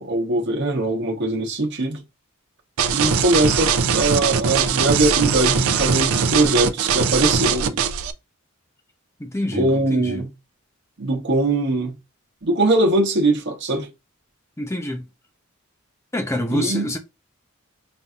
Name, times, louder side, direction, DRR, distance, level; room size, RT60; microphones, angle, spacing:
voice 1, 0.0-2.0 2.9-7.8 9.5-10.3 11.0-11.9 12.4-13.9 16.5-16.9, right 2 dB, 55° right, 1.1 m, -21 dB
sound 1, 2.8-8.1, right 6 dB, 85° right, 0.5 m, -21 dB
voice 2, 9.2-10.2 14.6-15.1 16.1-17.0, equal, 15° left, 0.7 m, -26 dB
5.4 x 2.7 x 2.4 m
head